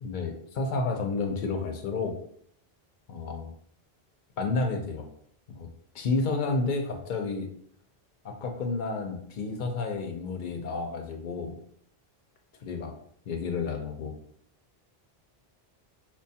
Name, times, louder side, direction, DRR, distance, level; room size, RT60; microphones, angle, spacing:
voice 1, 0.0-2.2 3.1-3.5 4.4-5.1 5.5-5.7 5.9-7.5 8.2-11.5 12.6-12.9 13.3-14.1, left 3 dB, 60° left, 4 dB, 0.6 m, -31 dB
4.5 x 2.2 x 2.7 m, 0.66 s
omnidirectional pair, 1.0 m